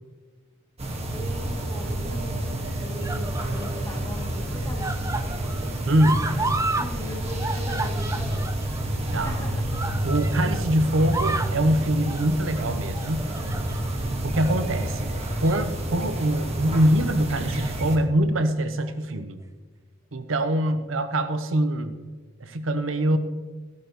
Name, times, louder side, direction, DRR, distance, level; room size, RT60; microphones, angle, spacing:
sound 1, 0.8-18.0, right 1 dB, 30° right, 1.6 m, -29 dB
voice 1, 1.1-5.6 6.7-8.5 9.2-10.1, equal, 15° left, -3 dB, 2.6 m, -40 dB
sound 2, 1.1-1.6 2.5-3.8 4.2-6.9 7.2-10.6 11.0-11.6 12.1-12.4 12.9-14.0 14.3-14.6 15.2-15.7 16.1-16.3 17.4-18.0 18.9-19.0, right 3 dB, 15° right, 0.5 m, -33 dB
voice 2, 5.9-6.3 9.1-9.3 10.0-13.3 14.2-15.1 15.4-19.4 20.1-22.0 22.4-23.2, right 1 dB, 75° right, 9 dB, 0.8 m, -24 dB
15.5 x 12.0 x 3.0 m, 1.4 s
head